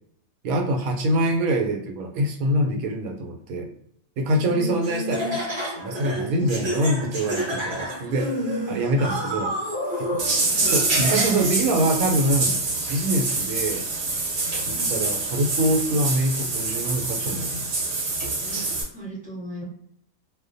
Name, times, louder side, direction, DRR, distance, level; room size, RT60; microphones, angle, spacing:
voice 1, 0.4-3.7 4.2-5.4 5.8-8.3 8.7-9.6 10.1-10.2 10.7-12.5 12.9-13.9 14.7-17.7, right 1 dB, 90° right, 2 dB, 1.0 m, -24 dB
voice 2, 4.3-5.3 7.9-8.8 10.5-10.7 14.7-15.1 18.4-18.6 18.9-19.6, equal, 5° right, -6 dB, 0.9 m, -33 dB
Laughter, 4.8-11.6, equal, 30° right, 0.5 m, -30 dB
sound 1, 10.2-18.8, right 3 dB, 55° right, 0.9 m, -26 dB
2.3 x 2.1 x 2.5 m, 0.71 s
omnidirectional pair, 1.4 m